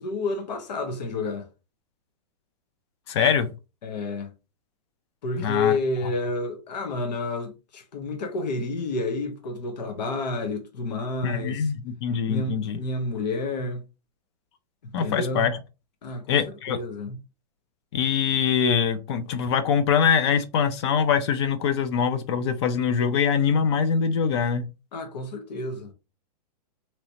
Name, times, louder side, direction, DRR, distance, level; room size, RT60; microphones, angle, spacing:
voice 1, 0.0-1.5 3.8-4.3 5.2-11.7 12.3-13.8 14.8-15.5 16.0-16.4 16.7-17.2 24.9-25.9, left 3 dB, 80° left, 1.0 m, -30 dB
voice 2, 3.1-3.5 5.4-5.7 11.2-12.8 14.9-15.6 16.3-16.8 17.9-24.6, left 7 dB, 40° left, 0.5 m, -23 dB
3.0 x 2.8 x 2.9 m
hypercardioid pair, 155°, 21 cm